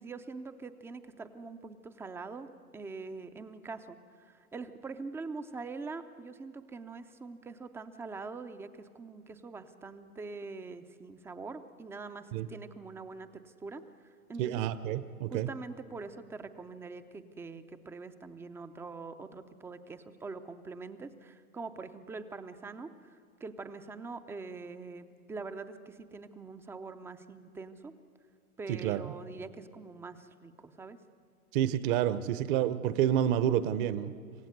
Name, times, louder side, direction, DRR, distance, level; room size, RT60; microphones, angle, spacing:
voice 1, 0.0-2.5 2.7-4.0 4.3-14.6 15.3-27.9 28.6-31.0, right 4 dB, 5° right, 9 dB, 0.5 m, -44 dB
voice 2, 14.4-15.5 28.7-29.0 31.5-34.1, right 11 dB, 35° right, 13 dB, 0.9 m, -29 dB
27.0 x 16.0 x 8.1 m, 2.3 s
hypercardioid pair, 120°, 44 cm